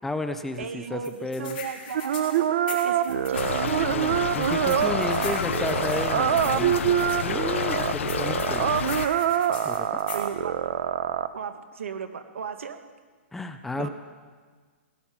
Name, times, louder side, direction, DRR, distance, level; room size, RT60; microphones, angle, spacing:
voice 1, 0.0-1.6 3.9-8.8 9.6-10.0 13.3-13.9, left 2 dB, 5° left, 8 dB, 0.3 m, -33 dB
voice 2, 0.6-4.5 10.1-10.6 11.3-12.8 13.8-13.9, right 6 dB, 90° right, 9 dB, 1.4 m, -36 dB
sound 1, 1.0-3.5 4.4-7.2 8.1-10.3, left 6 dB, 40° left, 4.3 m, -40 dB
sound 2, 1.9-11.3, right 10 dB, 45° right, 0.6 m, -25 dB
Stream / Trickle dribble, 3.3-9.1, left 7 dB, 80° left, 0.8 m, -30 dB
17.5 x 10.5 x 5.7 m, 1.5 s
hypercardioid pair, 175°, 7 cm